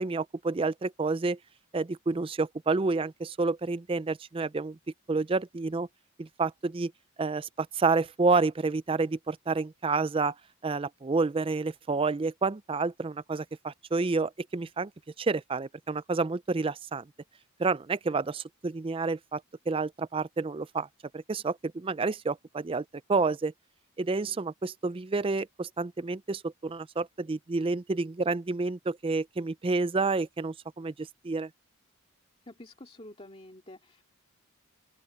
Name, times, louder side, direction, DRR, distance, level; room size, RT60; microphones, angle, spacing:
voice 1, 0.0-1.4 1.7-4.8 5.1-5.9 6.2-6.9 7.2-10.3 10.6-14.9 15.2-17.1 17.6-19.4 19.7-20.9 21.1-23.5 24.0-31.5, right 3 dB, 25° right, 0.4 m, -29 dB
voice 2, 32.5-34.0, left 1 dB, 25° left, 2.3 m, -48 dB
open air
head